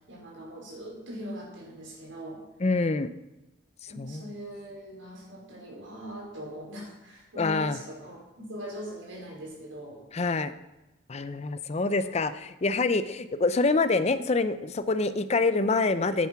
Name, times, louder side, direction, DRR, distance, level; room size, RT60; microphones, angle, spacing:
voice 1, 0.1-2.4 3.9-8.2 8.5-10.0 11.9-12.2, equal, 80° right, -2 dB, 4.7 m, -41 dB
voice 2, 2.6-3.1 4.0-4.2 7.4-7.8 10.1-10.5 11.1-16.3, left 3 dB, 35° left, 13 dB, 0.5 m, -26 dB
10.5 x 9.3 x 5.8 m, 0.98 s
head